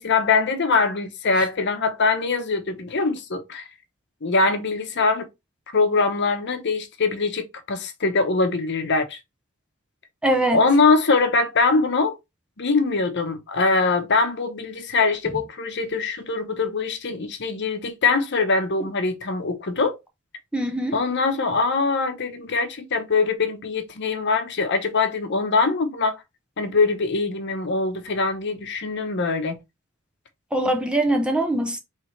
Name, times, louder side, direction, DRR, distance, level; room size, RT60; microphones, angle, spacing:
voice 1, 0.0-3.7 4.2-5.3 5.7-9.2 10.5-12.1 12.6-19.9 20.9-26.2 26.6-29.6, left 4 dB, 55° left, 0.8 m, -22 dB
voice 2, 10.2-10.6 20.5-21.0 30.5-31.8, right 1 dB, 5° right, 0.6 m, -22 dB
4.4 x 3.3 x 3.2 m
head